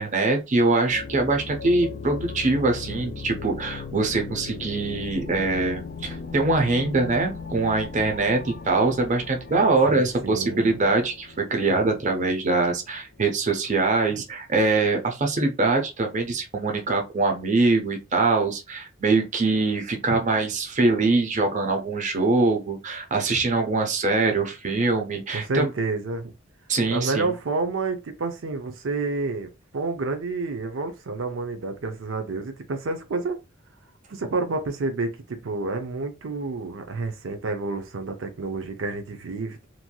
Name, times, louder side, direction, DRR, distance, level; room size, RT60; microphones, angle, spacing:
voice 1, 0.0-25.7 26.7-27.3, right 3 dB, 40° right, 0.6 m, -23 dB
sound 1, 0.9-13.6, left 4 dB, 50° left, 0.4 m, -38 dB
voice 2, 9.9-10.8 25.3-26.3 26.9-33.4 34.1-39.7, right 3 dB, 80° right, 0.6 m, -29 dB
3.0 x 2.6 x 2.3 m
head